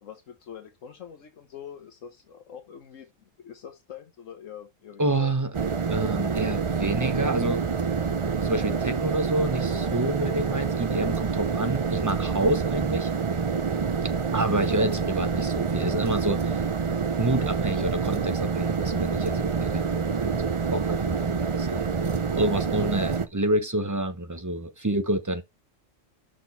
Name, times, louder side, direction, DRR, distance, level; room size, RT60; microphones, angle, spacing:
voice 1, 0.0-5.3, left 8 dB, 75° left, 1.3 m, -44 dB
voice 2, 5.0-5.5 5.9-7.6 8.4-13.1 14.3-16.6 17.2-21.9 22.4-25.4, right 1 dB, 15° right, 0.8 m, -28 dB
sound 1, 5.5-23.3, right 5 dB, 40° right, 0.4 m, -27 dB
6.2 x 4.7 x 5.7 m
omnidirectional pair, 1.4 m